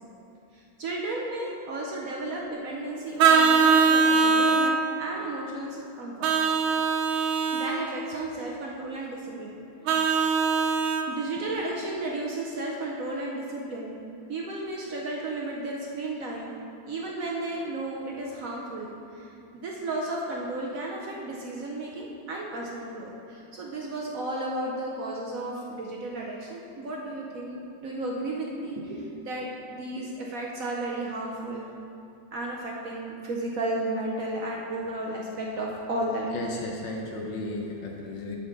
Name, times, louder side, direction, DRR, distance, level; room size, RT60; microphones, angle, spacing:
voice 1, 0.5-6.3 7.5-9.6 9.9-10.0 11.1-14.0 14.3-16.5 16.8-31.7 32.3-36.4, right 2 dB, 65° right, -2 dB, 0.8 m, -33 dB
Vehicle horn car horn honking, 3.2-4.7 6.2-7.7 9.9-11.1, right 5 dB, 85° right, 1.4 m, -21 dB
voice 2, 36.3-38.4, left 2 dB, 70° left, 0 dB, 1.4 m, -34 dB
8.0 x 4.0 x 6.5 m, 2.6 s
omnidirectional pair, 2.2 m